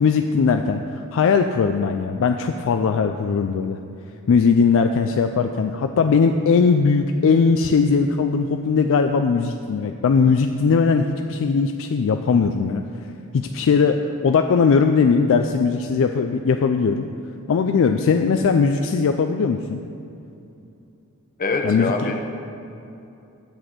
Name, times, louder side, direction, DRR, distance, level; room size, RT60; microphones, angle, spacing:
voice 1, 0.0-0.8 1.1-3.8 4.3-12.8 13.3-17.1 17.5-19.8 21.6-22.1, left 5 dB, 60° left, 6 dB, 0.4 m, -19 dB
voice 2, 21.4-22.2, left 3 dB, 40° left, 3 dB, 0.9 m, -24 dB
10.5 x 4.2 x 7.6 m, 2.8 s
head